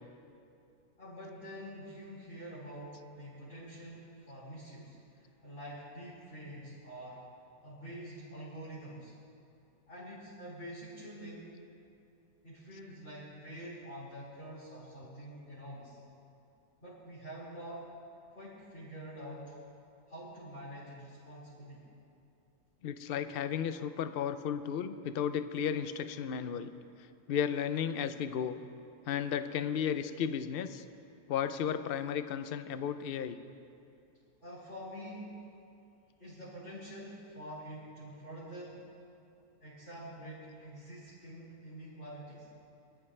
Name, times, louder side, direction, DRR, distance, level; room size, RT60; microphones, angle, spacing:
voice 1, 1.0-7.3 7.6-9.1 9.9-11.5 12.4-16.0 16.8-17.9 18.3-19.6 20.1-21.8 34.4-35.5 36.2-38.9 39.6-42.5, equal, 35° left, -13 dB, 5.2 m, -46 dB
voice 2, 22.8-26.7 27.3-28.6 29.1-30.8 31.3-33.4, left 8 dB, 75° left, 10 dB, 0.5 m, -34 dB
25.0 x 14.0 x 3.3 m, 2.6 s
omnidirectional pair, 1.7 m